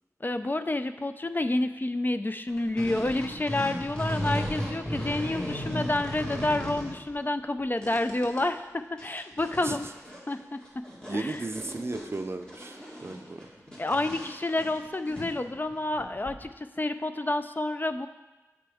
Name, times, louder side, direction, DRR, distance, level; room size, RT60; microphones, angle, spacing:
voice 1, 0.2-9.9 10.3-10.6 11.1-11.4 13.8-18.1, left 2 dB, 35° left, 9 dB, 0.3 m, -29 dB
sound 1, 2.5-7.1 7.6-8.4 8.7-8.8 9.0-16.4, equal, 15° left, 2.0 m, -36 dB
voice 2, 11.1-13.5, right 2 dB, 45° right, 8 dB, 0.4 m, -35 dB
8.6 x 5.1 x 3.5 m, 1.1 s
wide cardioid pair, 45°, 6 cm